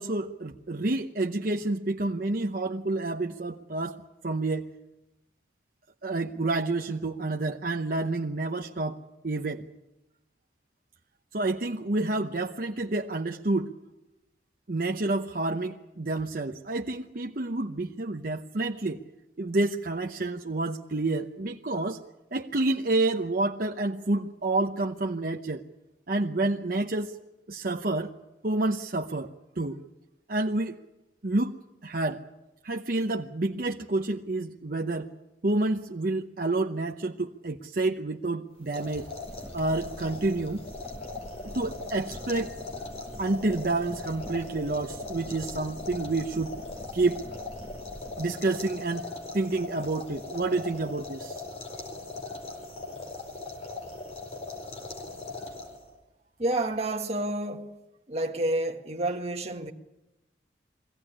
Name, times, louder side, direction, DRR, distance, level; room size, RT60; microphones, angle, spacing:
voice 1, 0.0-4.7 6.0-9.7 11.3-13.7 14.7-19.0 19.4-22.0 22.3-25.6 26.1-27.2 27.5-28.1 28.4-29.3 29.6-29.8 30.3-30.8 31.2-31.6 31.8-32.2 32.6-35.1 35.4-39.1 39.5-40.6 41.4-42.6 43.2-46.5 46.9-47.2 48.2-49.0 49.3-51.4, right 2 dB, 50° right, 0.8 m, -29 dB
sound 1, 38.6-56.0, left 3 dB, 35° left, 4.6 m, -40 dB
Crackle, 39.2-48.2, equal, 15° right, 1.7 m, -46 dB
voice 2, 56.4-57.7 58.1-59.7, right 1 dB, 35° right, 1.7 m, -29 dB
23.0 x 17.0 x 9.9 m
head